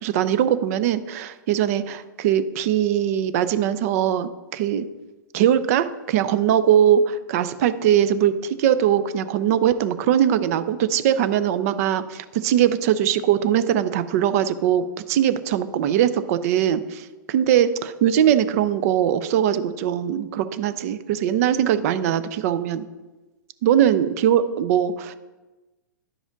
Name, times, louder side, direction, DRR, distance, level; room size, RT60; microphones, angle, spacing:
voice 1, 0.0-4.9 5.3-22.9 23.6-25.2, right 10 dB, 45° right, 13 dB, 0.5 m, -21 dB
10.5 x 4.9 x 3.8 m, 1.1 s
hypercardioid pair, 115°, 11 cm